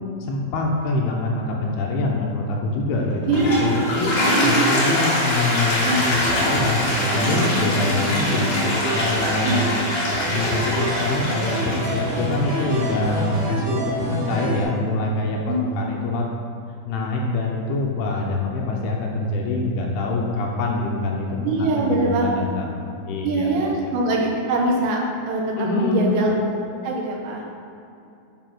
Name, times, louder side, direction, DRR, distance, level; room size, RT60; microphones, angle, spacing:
voice 1, 0.2-8.5 8.9-9.7 10.3-16.3 16.9-22.7 23.1-23.5 25.6-26.1, left 2 dB, 75° left, -1 dB, 2.6 m, -25 dB
Toilet flush, 3.1-13.4, left 1 dB, 45° left, 2.6 m, -24 dB
voice 2, 4.0-4.7 5.8-6.0 9.4-9.6 15.5-15.6 21.4-22.5 23.2-25.0 25.3-27.5, right 2 dB, 80° right, -1 dB, 3.3 m, -23 dB
sound 1, 6.1-14.6, right 1 dB, 35° right, 1.2 m, -28 dB
9.1 x 4.3 x 6.0 m, 2.6 s
omnidirectional pair, 4.9 m